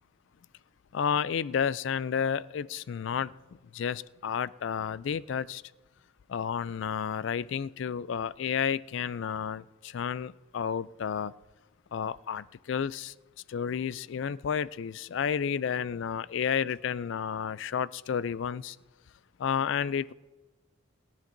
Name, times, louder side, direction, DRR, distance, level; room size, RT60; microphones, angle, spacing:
voice 1, 0.9-3.3 3.7-5.6 6.3-11.3 11.9-13.1 13.5-18.8 19.4-20.1, left 7 dB, 60° left, 18 dB, 0.3 m, -31 dB
27.0 x 10.0 x 2.6 m, 1.1 s
head